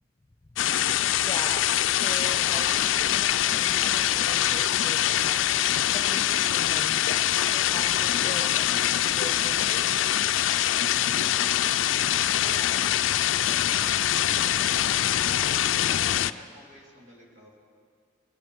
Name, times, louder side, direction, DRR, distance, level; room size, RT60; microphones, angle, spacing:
sound 1, 0.6-16.3, left 12 dB, 75° left, 0.4 m, -24 dB
voice 1, 1.1-5.4 5.9-9.9, left 2 dB, 20° left, 6 dB, 0.8 m, -41 dB
voice 2, 12.3-12.8 15.9-17.5, equal, 75° right, -1 dB, 2.5 m, -49 dB
21.5 x 11.0 x 5.2 m, 2.3 s
head